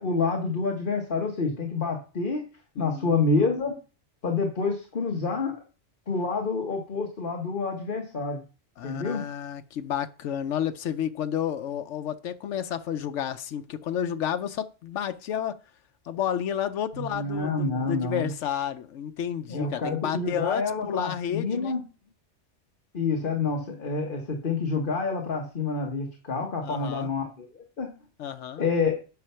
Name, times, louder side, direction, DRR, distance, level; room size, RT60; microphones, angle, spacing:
voice 1, 0.0-2.4 2.8-3.7 4.2-5.5 6.1-8.4 8.8-9.2 16.9-18.3 19.5-21.8 22.9-27.9 28.6-29.0, left 4 dB, 45° left, 1.6 m, -28 dB
voice 2, 2.8-3.2 8.8-15.6 16.1-21.7 26.6-27.1 28.2-28.6, left 9 dB, 85° left, 1.0 m, -31 dB
9.4 x 5.8 x 5.6 m
omnidirectional pair, 1.2 m